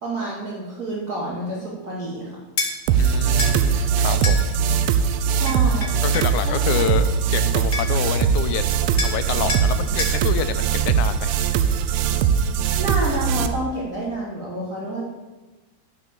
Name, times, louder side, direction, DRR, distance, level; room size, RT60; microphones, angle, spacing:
voice 1, 0.0-2.3 5.3-5.9 6.4-6.6 12.8-15.1, right 1 dB, 30° right, -7 dB, 2.6 m, -29 dB
sound 1, 2.6-2.7 3.4-3.6 4.2-4.4 5.5-6.3 7.4-7.5 7.7-8.1 9.0-9.2 9.5-9.7 10.0-10.2, left 3 dB, 40° left, 1.2 m, -27 dB
sound 2, 2.9-13.5, right 7 dB, 80° right, 1.7 m, -21 dB
voice 2, 3.0-4.5 6.0-11.3, left 10 dB, 85° left, 10 dB, 2.2 m, -28 dB
11.0 x 6.3 x 6.7 m, 1.2 s
omnidirectional pair, 3.4 m